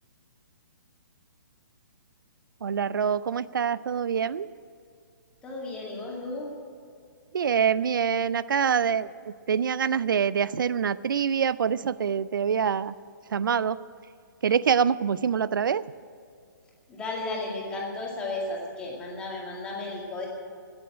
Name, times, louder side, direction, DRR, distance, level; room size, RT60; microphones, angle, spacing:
voice 1, 2.6-4.5 7.3-9.1 9.5-12.9 13.3-13.8 14.4-15.9, right 7 dB, 85° right, 18 dB, 0.4 m, -25 dB
voice 2, 5.4-6.5 16.9-20.3, left 2 dB, 10° left, -2 dB, 2.1 m, -34 dB
17.5 x 7.0 x 9.8 m, 2.3 s
hypercardioid pair, 170°, 11 cm